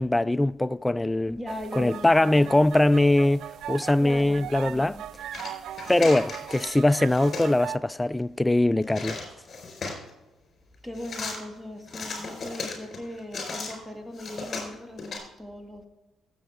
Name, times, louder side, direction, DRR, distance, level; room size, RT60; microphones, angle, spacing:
voice 1, 0.0-1.4 1.8-5.0 5.9-9.2, left 1 dB, 15° left, 0.3 m, -22 dB
voice 2, 1.3-2.6 4.0-5.1 10.8-15.9, left 1 dB, 5° right, 2.2 m, -39 dB
sound 1, 1.5-7.8, right 11 dB, 70° right, 0.3 m, -39 dB
sound 2, 5.3-6.8 7.0-7.5 8.8-10.1 11.0-11.4 11.9-13.7 14.1-15.2, left 4 dB, 50° left, 4.1 m, -36 dB
15.0 x 7.4 x 3.5 m
supercardioid pair, 60°, 0 cm